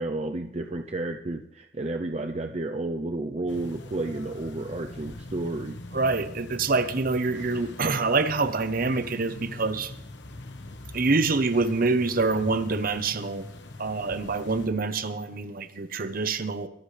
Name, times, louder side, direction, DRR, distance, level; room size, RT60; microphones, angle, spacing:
voice 1, 0.0-5.8, right 2 dB, 35° right, 0.6 m, -31 dB
sound 1, 3.5-14.7, left 2 dB, 70° left, 1.2 m, -42 dB
voice 2, 5.9-9.9 10.9-13.5 13.8-16.7, right 3 dB, 50° right, 0.9 m, -26 dB
23.5 x 11.0 x 3.4 m
head